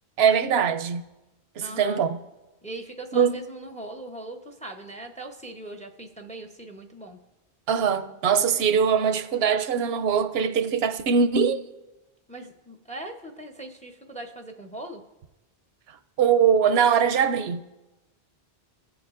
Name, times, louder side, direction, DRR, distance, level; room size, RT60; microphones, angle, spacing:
voice 1, 0.2-1.0 1.6-2.2 3.1-3.4 7.7-11.6 16.2-17.6, right 7 dB, 80° right, 0.8 m, -22 dB
voice 2, 1.6-2.1 2.6-7.2 12.3-15.0, right 2 dB, 10° left, 0.6 m, -40 dB
21.0 x 8.0 x 2.5 m
omnidirectional pair, 1.0 m